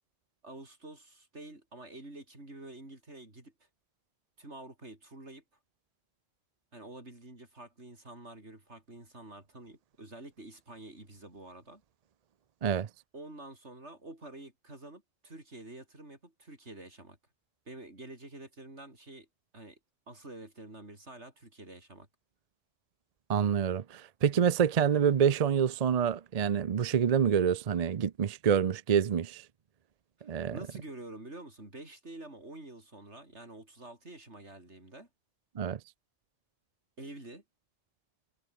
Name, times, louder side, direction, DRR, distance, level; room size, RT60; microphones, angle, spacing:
voice 1, 0.4-3.5 4.4-5.4 6.7-11.8 13.1-17.2 17.7-19.3 19.5-19.8 20.1-22.1 30.2-35.1 37.0-37.4, right 2 dB, 75° right, 5.9 m, -48 dB
voice 2, 23.3-29.4 30.3-30.6 35.6-35.8, right 8 dB, 45° right, 0.6 m, -27 dB
omnidirectional pair, 1.2 m